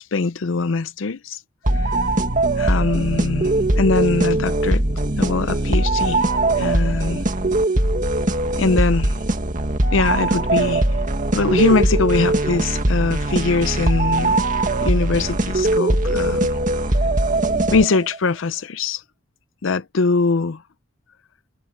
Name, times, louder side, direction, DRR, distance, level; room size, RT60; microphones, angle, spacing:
voice 1, 0.0-1.4 1.8-1.9 2.6-4.8 5.2-6.2 6.6-7.2 8.6-9.1 9.9-10.8 11.3-14.4 14.8-16.5 17.7-19.0 19.6-20.6, left 4 dB, 80° left, 0.6 m, -22 dB
sound 1, 1.7-18.2, right 2 dB, 45° right, 2.1 m, -20 dB
head